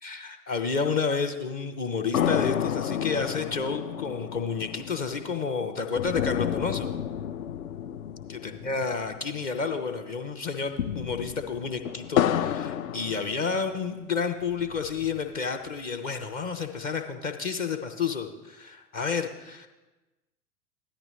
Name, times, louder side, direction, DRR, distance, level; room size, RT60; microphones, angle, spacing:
voice 1, 0.0-6.9 8.4-19.7, left 5 dB, 20° left, 5 dB, 0.5 m, -30 dB
sound 1, 2.1-9.7 10.0-10.1 10.5-13.9 14.4-15.4, left 9 dB, 60° left, 0.6 m, -31 dB
13.5 x 11.0 x 3.1 m, 1.1 s
figure-of-eight pair, 95°, 46 cm